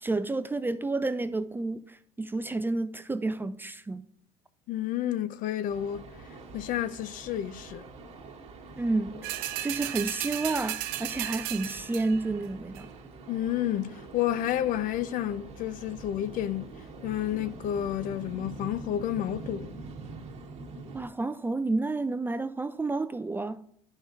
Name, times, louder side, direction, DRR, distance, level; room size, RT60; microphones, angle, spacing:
voice 1, 0.0-4.0 8.8-9.3 9.6-12.9 20.9-23.7, right 3 dB, 15° right, 0.4 m, -30 dB
voice 2, 4.7-6.0 6.5-7.8 13.3-16.7 17.0-19.7, left 11 dB, 55° left, 0.5 m, -30 dB
sound 1, 5.7-21.1, right 3 dB, 45° right, 1.7 m, -45 dB
sound 2, 9.2-12.3 12.7-12.8, right 14 dB, 70° right, 0.5 m, -35 dB
11.5 x 5.2 x 2.6 m
hypercardioid pair, 75°, 16 cm